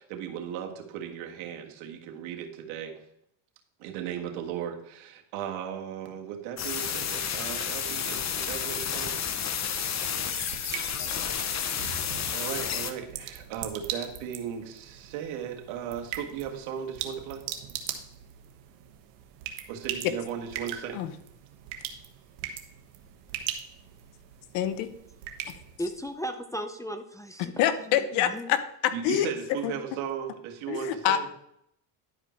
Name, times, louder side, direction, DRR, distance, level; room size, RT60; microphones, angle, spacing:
voice 1, 0.0-2.9 3.8-9.2 9.8-9.9 12.3-17.4 19.7-21.0 28.9-31.3, right 9 dB, 70° right, 1.8 m, -36 dB
sound 1, 6.6-12.9, left 7 dB, 35° left, 0.9 m, -31 dB
sound 2, 9.8-26.2, right 10 dB, 90° right, 1.3 m, -41 dB
voice 2, 24.5-24.9 27.4-29.3 29.6-29.7 30.7-31.2, left 10 dB, 80° left, 1.0 m, -26 dB
voice 3, 25.8-27.5 27.8-28.5, equal, 5° left, 0.5 m, -36 dB
11.0 x 5.0 x 4.4 m
supercardioid pair, 110°, 50 cm